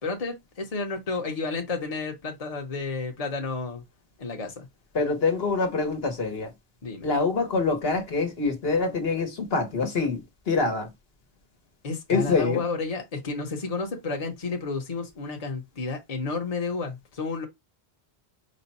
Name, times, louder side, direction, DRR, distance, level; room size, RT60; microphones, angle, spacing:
voice 1, 0.0-3.8 4.2-4.7 6.8-7.1 11.8-17.5, left 4 dB, 40° left, 1.0 m, -31 dB
voice 2, 4.9-6.5 7.0-10.9 12.1-12.6, left 4 dB, 70° left, 1.3 m, -25 dB
5.2 x 2.2 x 4.1 m
omnidirectional pair, 1.1 m